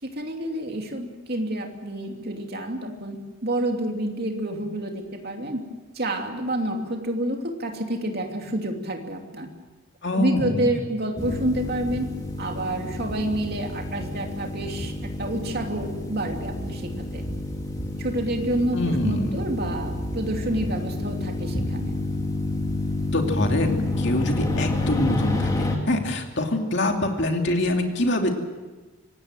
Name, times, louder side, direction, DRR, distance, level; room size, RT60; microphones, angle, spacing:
voice 1, 0.0-5.6 5.9-9.5 10.1-12.1 12.4-17.2 18.0-22.0, right 1 dB, 50° right, 3 dB, 2.8 m, -28 dB
voice 2, 10.0-10.7 18.7-19.4 23.1-28.3, left 1 dB, 55° left, 3 dB, 2.7 m, -24 dB
sound 1, 11.2-25.8, left 2 dB, 15° left, 2.9 m, -29 dB
25.5 x 18.0 x 7.7 m, 1.3 s
head